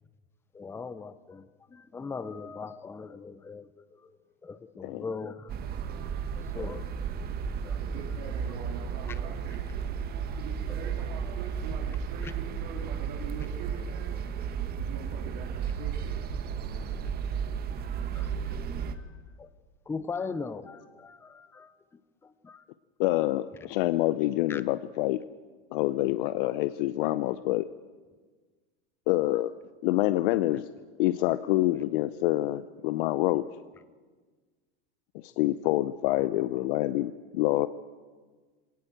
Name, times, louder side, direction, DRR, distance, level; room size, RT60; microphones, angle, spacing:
voice 1, 0.5-5.6 6.3-6.9 7.6-7.8 8.1-8.3 9.1-9.2 10.3-10.8 12.2-12.3 17.8-19.5 19.9-22.6 24.5-24.6, left 4 dB, 10° left, 13 dB, 0.6 m, -41 dB
sound 1, 5.5-18.9, right 7 dB, 30° right, 1.4 m, -33 dB
voice 2, 7.8-9.7 10.4-14.2 14.8-16.1 16.4-17.2, right 6 dB, 60° right, -1 dB, 3.7 m, -44 dB
voice 3, 23.0-25.2 25.7-27.7 29.1-29.5 29.8-30.7 31.0-33.5 35.1-37.7, left 16 dB, 60° left, 13 dB, 0.7 m, -26 dB
22.5 x 18.0 x 7.9 m, 1.4 s
supercardioid pair, 140°, 31 cm